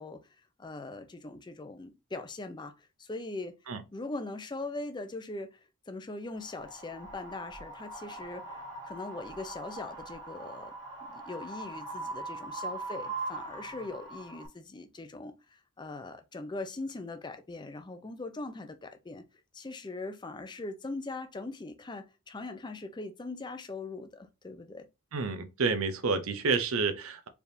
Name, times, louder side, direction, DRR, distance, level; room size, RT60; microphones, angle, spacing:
voice 1, 0.0-3.5 3.9-10.7 11.1-19.2 19.5-24.9, left 2 dB, 20° left, 0.5 m, -41 dB
Wind, 6.3-14.5, right 2 dB, 20° right, 1.7 m, -41 dB
voice 2, 25.1-27.3, right 4 dB, 70° right, 0.7 m, -29 dB
4.6 x 3.4 x 2.6 m
head